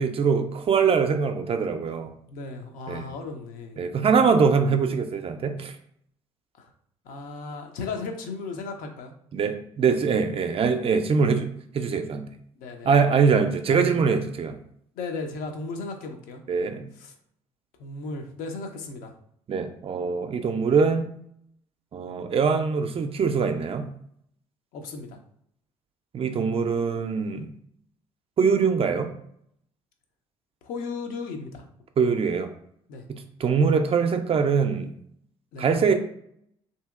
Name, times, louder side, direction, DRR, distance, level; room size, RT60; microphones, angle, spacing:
voice 1, 0.0-2.1 2.9-3.1 3.8-5.7 9.3-12.2 12.8-14.6 16.5-16.9 19.5-21.1 21.9-23.9 26.1-27.5 28.4-29.1 32.0-32.5 33.1-34.9 35.6-35.9, right 5 dB, 35° right, 7 dB, 0.4 m, -23 dB
voice 2, 2.3-3.8 6.6-6.7 7.0-9.1 12.5-12.9 13.7-13.9 14.9-16.4 17.0-17.1 17.8-19.1 24.7-25.2 30.6-31.6 32.9-33.1 35.5-35.7, left 4 dB, 65° left, 4 dB, 0.6 m, -35 dB
2.7 x 2.7 x 2.4 m, 0.70 s
hypercardioid pair, 50°, 16 cm